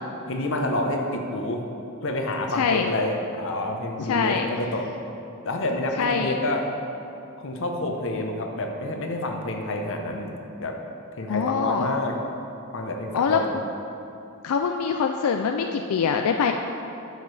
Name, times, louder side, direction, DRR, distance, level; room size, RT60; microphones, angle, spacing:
voice 1, 0.3-1.6 2.0-4.9 5.4-6.7 7.4-10.8 11.2-12.2 12.7-13.5, left 1 dB, 60° left, 3 dB, 0.8 m, -28 dB
voice 2, 2.5-2.9 4.0-4.5 6.0-6.4 11.3-11.9 13.1-13.4 14.4-16.5, left 6 dB, 90° left, 4 dB, 0.4 m, -24 dB
10.5 x 6.5 x 3.3 m, 2.9 s
head